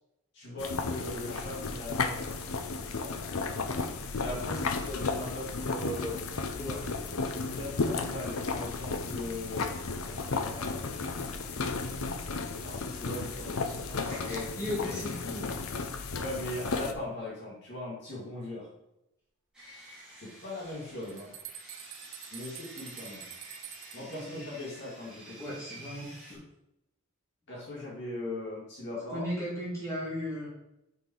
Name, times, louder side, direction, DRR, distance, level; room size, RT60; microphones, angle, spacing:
voice 1, 0.3-2.4 2.8-3.3 4.1-6.2 7.4-11.8 12.6-14.5 14.8-15.0 16.1-18.7 20.2-21.3 22.3-23.3 23.9-25.4 27.5-29.2, left 1 dB, 55° left, -5 dB, 2.5 m, -40 dB
sound 1, 0.6-16.9, left 4 dB, 80° left, 0.7 m, -34 dB
voice 2, 6.6-6.9 14.0-15.5 15.9-16.0 24.1-24.4 25.4-26.4 29.1-30.5, equal, 15° left, -7 dB, 3.1 m, -37 dB
Sawing, 19.5-26.4, right 1 dB, 5° right, 2.4 m, -50 dB
sound 2, 20.7-20.8 21.0-24.2, right 10 dB, 65° right, 0.8 m, -46 dB
6.5 x 5.6 x 4.7 m, 0.87 s
head